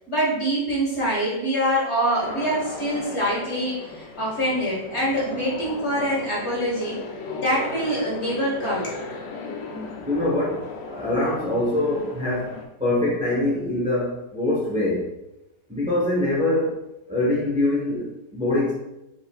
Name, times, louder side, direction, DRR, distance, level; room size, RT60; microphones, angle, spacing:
voice 1, 0.1-7.1 7.3-9.0, equal, 40° left, -5 dB, 1.6 m, -25 dB
sound 1, 2.2-12.6, left 3 dB, 80° left, 1.3 m, -36 dB
voice 2, 9.7-12.5 12.8-15.1 15.7-16.8 17.1-18.7, left 1 dB, 5° right, -6 dB, 0.8 m, -24 dB
5.2 x 4.3 x 2.4 m, 0.91 s
omnidirectional pair, 1.9 m